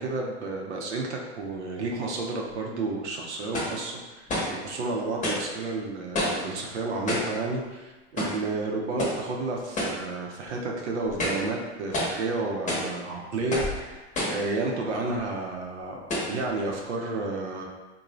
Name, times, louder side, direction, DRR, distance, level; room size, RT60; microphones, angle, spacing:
voice 1, 0.0-16.0 16.3-17.6, right 3 dB, 90° right, -1 dB, 0.6 m, -31 dB
sound 1, 2.5-2.6 3.5-3.8 4.3-4.6 5.2-5.5 6.1-6.5 7.1-7.4 8.2-8.5 9.0-9.2 9.8-10.0 10.5-10.6 11.1-11.5 11.9-12.2 12.7-12.9 13.5-13.8 14.1-14.5 15.2-15.3 16.1-16.4, left 1 dB, 20° left, 0.7 m, -29 dB
2.6 x 2.1 x 3.0 m, 1.2 s
hypercardioid pair, 115°, 33 cm